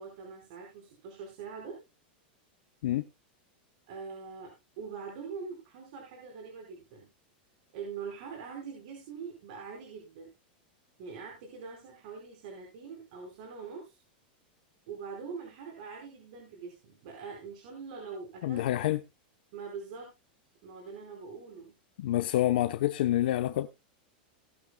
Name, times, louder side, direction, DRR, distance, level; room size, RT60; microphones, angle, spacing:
voice 1, 0.0-1.8 3.9-7.1 7.7-10.3 11.0-14.0 14.9-18.6 19.5-20.1 20.6-21.7, right 5 dB, 50° right, 4.8 m, -43 dB
voice 2, 18.4-19.0 22.0-23.7, left 13 dB, 65° left, 0.9 m, -27 dB
18.5 x 9.5 x 2.3 m
supercardioid pair, 165°, 5 cm